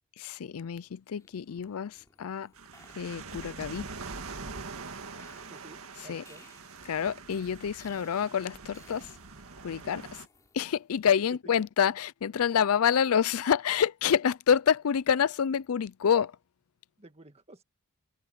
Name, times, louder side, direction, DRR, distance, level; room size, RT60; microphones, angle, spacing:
voice 1, 0.2-2.5 3.0-3.9 6.1-6.2 6.9-9.1 9.6-10.1 10.5-16.3, left 7 dB, 75° left, 0.4 m, -27 dB
sound 1, 1.1-11.0, left 3 dB, 15° left, 4.6 m, -62 dB
sound 2, 2.6-10.3, right 4 dB, 75° right, 1.9 m, -44 dB
voice 2, 5.5-6.5 11.3-11.5 17.0-17.6, right 1 dB, 30° right, 1.7 m, -52 dB
head